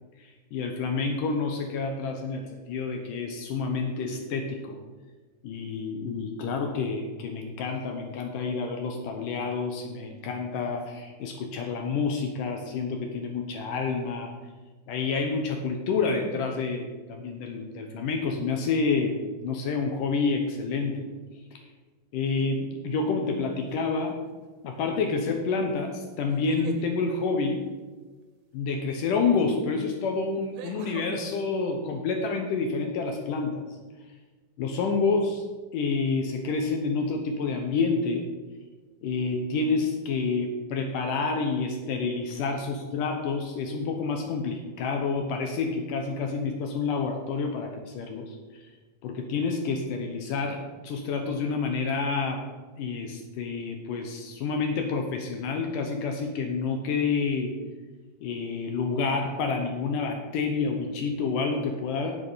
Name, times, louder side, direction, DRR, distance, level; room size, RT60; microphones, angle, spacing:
voice 1, 0.2-4.8 5.4-14.3 14.9-21.1 21.5-21.6 22.1-24.2 24.6-27.7 28.5-33.6 34.6-35.4 35.7-38.3 39.0-48.6 49.0-52.4 52.8-57.5 58.2-62.2, left 4 dB, 70° left, 4 dB, 2.2 m, -28 dB
sound 1, 23.7-24.1 26.3-26.9 29.2-29.3 30.5-31.1, right 8 dB, 80° right, 2.9 m, -43 dB
9.8 x 8.1 x 5.6 m, 1.3 s
omnidirectional pair, 4.4 m